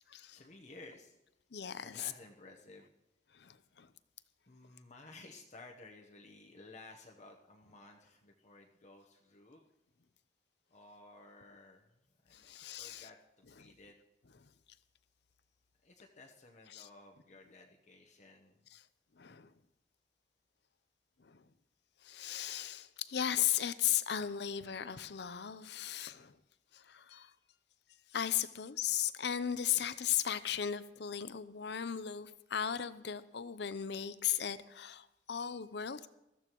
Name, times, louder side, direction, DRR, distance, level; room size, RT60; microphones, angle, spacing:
voice 1, 0.2-1.2 1.8-2.9 4.5-9.7 10.7-11.9 12.2-13.2 13.6-14.0 15.8-18.6 29.7-29.8, left 2 dB, 45° left, 1.0 m, -55 dB
voice 2, 1.5-2.1 3.3-3.9 12.3-13.1 13.6-13.7 16.7-16.9 19.2-19.5 21.2-21.4 22.0-26.4 26.7-27.3 28.1-36.1, left 10 dB, 70° left, 0.6 m, -36 dB
21.0 x 14.5 x 3.1 m
head